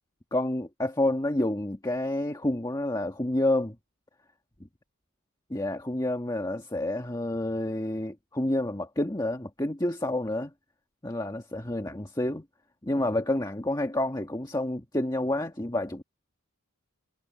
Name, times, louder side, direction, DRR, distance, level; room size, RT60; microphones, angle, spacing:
voice 1, 0.3-3.8 5.5-10.5 11.0-12.4 12.8-16.0, left 1 dB, 15° left, 1.5 m, -29 dB
head